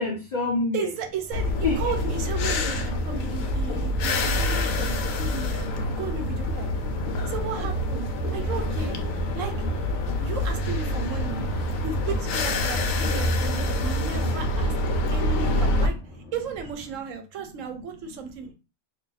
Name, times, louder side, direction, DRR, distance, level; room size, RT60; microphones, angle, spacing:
voice 1, 0.0-0.9 1.6-1.8 5.2-6.0 6.9-7.3 16.9-17.0, left 3 dB, 45° left, -3 dB, 0.6 m, -30 dB
voice 2, 0.7-6.7 7.2-9.0 9.3-9.5 10.2-11.5 11.8-14.7 15.1-16.0 16.3-18.5, right 6 dB, 65° right, 6 dB, 0.9 m, -34 dB
sound 1, 1.0-17.0, left 1 dB, 30° left, 1.1 m, -46 dB
sound 2, 1.3-15.9, left 1 dB, 65° left, 0.9 m, -26 dB
2.6 x 2.5 x 3.9 m, 0.31 s
omnidirectional pair, 1.6 m